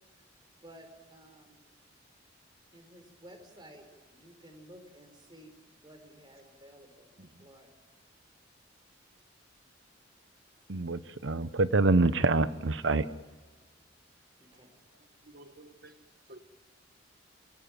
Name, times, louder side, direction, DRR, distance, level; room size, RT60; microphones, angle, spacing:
voice 1, 0.6-1.6 2.7-5.5 5.8-7.7 14.4-14.7, equal, 25° right, 4.8 m, -54 dB
voice 2, 10.7-13.1, right 3 dB, 70° right, 0.8 m, -26 dB
voice 3, 15.2-16.4, right 1 dB, 50° right, 1.4 m, -53 dB
29.5 x 17.0 x 7.5 m
head